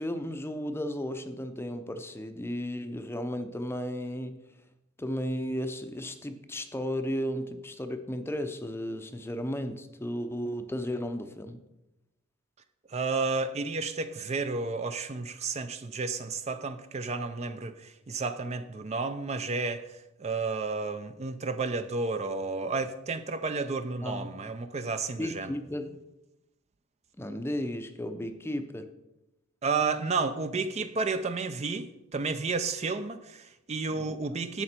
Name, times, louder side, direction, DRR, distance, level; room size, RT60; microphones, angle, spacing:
voice 1, 0.0-4.3 5.0-11.6 24.0-24.4 25.2-26.0 27.2-28.9 33.9-34.4, equal, 10° left, 8 dB, 0.6 m, -34 dB
voice 2, 12.9-19.8 20.2-25.5 29.6-34.6, right 4 dB, 30° right, 10 dB, 0.4 m, -31 dB
11.0 x 7.6 x 4.4 m, 0.93 s
head